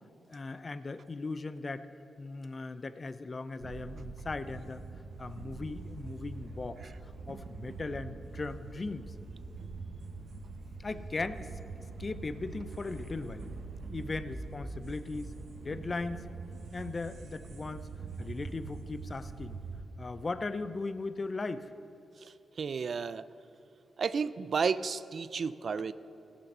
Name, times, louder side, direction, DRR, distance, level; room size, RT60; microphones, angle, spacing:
voice 1, 0.3-1.9 2.2-4.9 5.2-9.1 10.8-11.5 12.0-13.5 13.9-16.3 16.7-17.9 18.2-19.6 20.0-21.7 25.8-25.9, left 3 dB, 40° left, 12 dB, 0.5 m, -38 dB
sound 1, 3.6-19.8, right 3 dB, 80° right, 1.2 m, -44 dB
voice 2, 22.6-23.3 24.0-25.9, right 5 dB, 60° right, 15 dB, 0.4 m, -32 dB
16.5 x 5.8 x 5.4 m, 2.8 s
cardioid pair, 65°, 0 cm